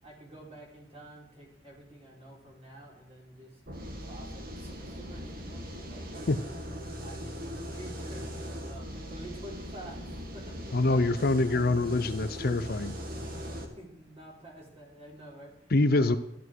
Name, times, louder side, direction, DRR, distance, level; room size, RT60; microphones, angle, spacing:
voice 1, 0.0-6.4 6.7-8.4 8.7-11.1 13.2-16.2, right 1 dB, 35° right, -2 dB, 4.6 m, -49 dB
sound 1, 3.7-13.7, equal, 55° right, 2.2 m, -40 dB
voice 2, 10.7-13.0 15.7-16.2, left 2 dB, 55° left, 11 dB, 0.7 m, -25 dB
13.5 x 11.5 x 4.7 m, 0.80 s
head